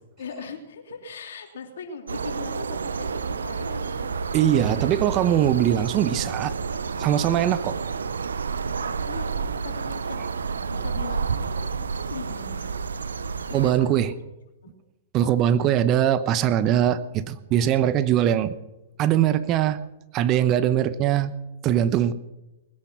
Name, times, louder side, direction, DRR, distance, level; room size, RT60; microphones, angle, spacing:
voice 1, 0.2-4.2 7.3-7.5 8.8-12.7 13.5-14.1 14.6-14.7 15.2-15.8, left 5 dB, 70° left, 3 dB, 3.0 m, -40 dB
sound 1, 2.1-13.7, right 5 dB, 85° right, 0.8 m, -30 dB
voice 2, 4.3-6.6 7.0-7.8 13.5-14.1 15.1-18.6 19.0-19.8 20.1-21.3 21.6-22.1, right 10 dB, 35° right, 14 dB, 0.9 m, -21 dB
20.5 x 10.0 x 6.1 m, 0.99 s
hypercardioid pair, 120°, 0 cm